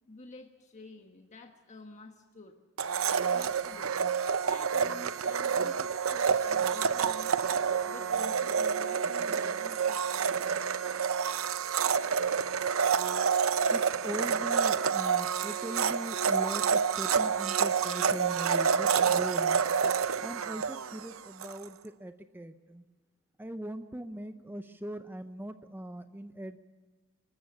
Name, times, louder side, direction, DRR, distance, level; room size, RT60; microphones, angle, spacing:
voice 1, 0.1-2.6 3.3-4.0 4.4-7.4 7.8-10.8, left 2 dB, 35° left, 3 dB, 1.3 m, -50 dB
Domestic sounds home sounds, 2.8-21.6, right 6 dB, 80° right, 0.7 m, -28 dB
voice 2, 13.7-19.6 20.2-22.8 23.4-26.6, right 1 dB, 10° right, 9 dB, 0.6 m, -40 dB
25.0 x 14.5 x 8.5 m, 1.5 s
head